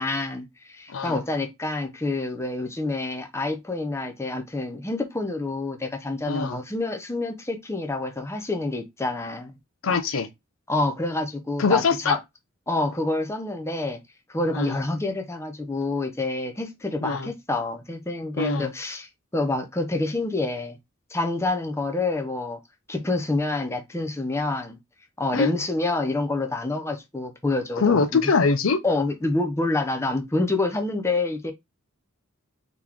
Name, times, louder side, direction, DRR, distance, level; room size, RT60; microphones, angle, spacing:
voice 1, 0.0-9.6 10.7-12.2 12.7-14.0 14.3-20.8 21.1-22.6 22.9-24.8 25.2-28.2 28.8-31.5, left 2 dB, 15° left, 0.7 m, -27 dB
voice 2, 0.9-1.2 6.3-6.6 9.8-10.3 11.6-12.2 14.5-14.8 17.0-17.3 18.4-18.7 25.3-25.5 27.8-28.8, left 4 dB, 65° left, 0.6 m, -23 dB
4.0 x 3.0 x 3.6 m
head